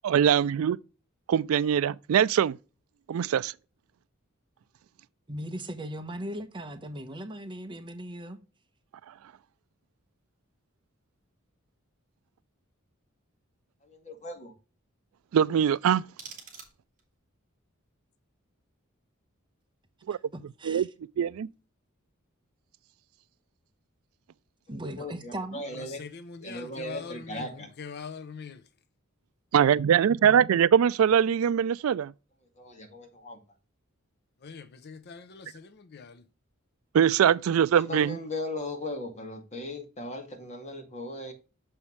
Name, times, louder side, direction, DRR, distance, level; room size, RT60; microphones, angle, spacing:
voice 1, 0.0-0.8 1.3-2.6 3.1-3.5 15.3-16.0 20.1-20.2 20.6-20.9 21.2-21.5 29.5-32.1 36.9-38.2, right 8 dB, 80° right, 0.3 m, -22 dB
voice 2, 5.3-8.4 20.1-20.2 20.6-20.9 24.7-25.6, right 1 dB, 25° right, 1.0 m, -38 dB
voice 3, 13.8-14.5 24.7-26.0 26.4-27.7 32.6-33.4 37.9-41.3, left 1 dB, 35° left, 2.0 m, -38 dB
sound 1, 15.7-17.2, right 6 dB, 40° right, 2.5 m, -48 dB
voice 4, 26.0-27.5 27.8-28.6 34.4-36.2, left 5 dB, 50° left, 0.6 m, -42 dB
7.0 x 5.6 x 3.2 m
head